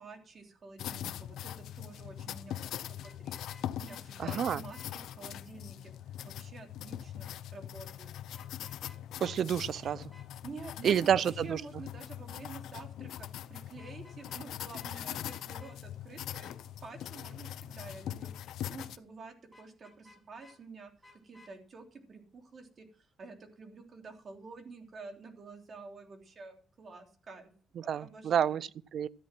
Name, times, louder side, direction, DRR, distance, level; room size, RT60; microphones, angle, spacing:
voice 1, 0.0-5.9 6.2-8.1 10.4-16.5 16.8-27.5 27.8-28.6, right 4 dB, 45° right, 3.1 m, -49 dB
sound 1, 0.8-19.0, left 11 dB, 80° left, 0.7 m, -42 dB
Vehicle horn car horn honking, 3.0-4.0 4.4-4.9 8.3-9.0 9.2-9.4 9.8-10.3 13.7-14.5 14.7-14.9 15.3-15.8 19.5-20.6 21.0-21.5, left 2 dB, ahead, 6.6 m, -57 dB
voice 2, 4.2-4.6 9.2-10.1 10.8-11.6 27.9-29.1, right 9 dB, 65° right, 0.5 m, -29 dB
13.5 x 9.6 x 6.0 m
cardioid pair, 90°, 0 cm